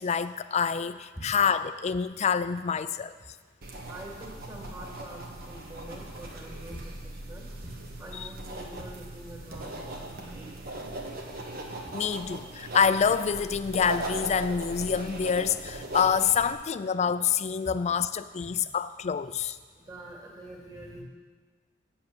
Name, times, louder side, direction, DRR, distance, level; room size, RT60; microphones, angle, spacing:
voice 1, 0.0-3.1 8.1-8.2 11.9-19.6, left 7 dB, 35° left, 13 dB, 0.4 m, -27 dB
sound 1, 3.6-16.5, right 1 dB, 55° right, 1.5 m, -39 dB
voice 2, 3.9-7.7 8.0-10.8 11.9-12.0 17.6-17.7 19.7-21.0, right 1 dB, 25° right, -2 dB, 2.5 m, -45 dB
7.8 x 7.6 x 8.6 m, 1.4 s
head